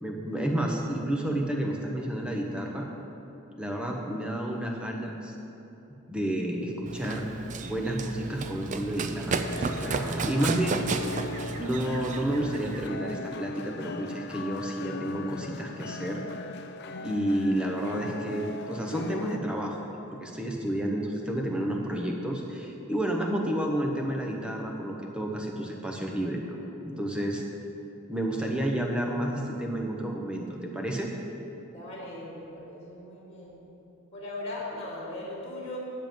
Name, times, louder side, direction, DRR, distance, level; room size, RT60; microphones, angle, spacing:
voice 1, 0.0-2.9 3.6-5.3 6.1-7.3 7.6-10.8 11.6-16.2 17.0-26.4 26.8-27.4 28.1-31.1, right 1 dB, 5° right, 0 dB, 0.8 m, -30 dB
Run, 6.9-12.9, right 4 dB, 35° right, 0.3 m, -33 dB
sound 1, 9.4-19.4, left 3 dB, 50° left, 0.4 m, -39 dB
voice 2, 31.7-33.6 34.1-35.8, left 1 dB, 30° left, -4 dB, 2.2 m, -39 dB
9.9 x 7.5 x 5.3 m, 2.9 s
head